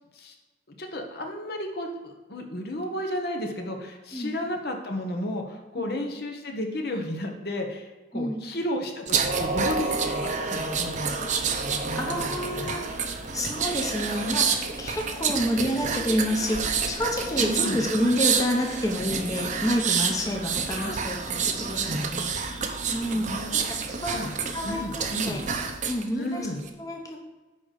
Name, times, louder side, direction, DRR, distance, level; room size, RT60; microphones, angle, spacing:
voice 1, 0.8-11.2 11.6-12.7 17.4-17.8 20.7-21.0 23.1-23.6 24.1-24.2 24.6-25.4 26.1-26.6, left 1 dB, 60° left, 3 dB, 1.2 m, -33 dB
sound 1, 9.1-26.0 26.4-26.7, right 5 dB, 45° right, 0.8 m, -29 dB
voice 2, 11.9-22.6 22.9-23.8 24.0-25.4 25.9-26.5 26.8-27.2, equal, 20° left, 1 dB, 0.9 m, -29 dB
9.6 x 3.9 x 6.6 m, 1.2 s
head